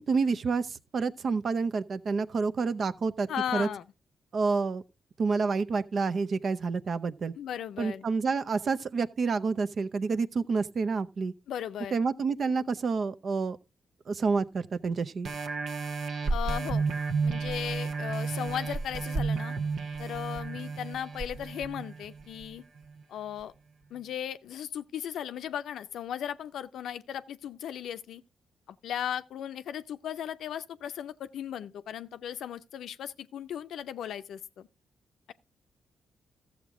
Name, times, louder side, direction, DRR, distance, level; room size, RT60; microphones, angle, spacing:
voice 1, 0.0-3.7 4.3-4.8 5.2-7.3 7.8-11.3 11.9-13.6 14.1-15.3, right 4 dB, 55° right, 0.7 m, -28 dB
voice 2, 3.3-3.9 7.4-8.0 11.5-11.9 16.3-16.9 17.2-19.6 20.0-22.6 23.1-23.5 23.9-28.2 28.7-34.7, left 9 dB, 80° left, 0.5 m, -36 dB
sound 1, 15.2-22.4 23.0-23.1, right 4 dB, 75° right, 1.2 m, -32 dB
13.5 x 7.2 x 3.6 m
supercardioid pair, 60°, 0 cm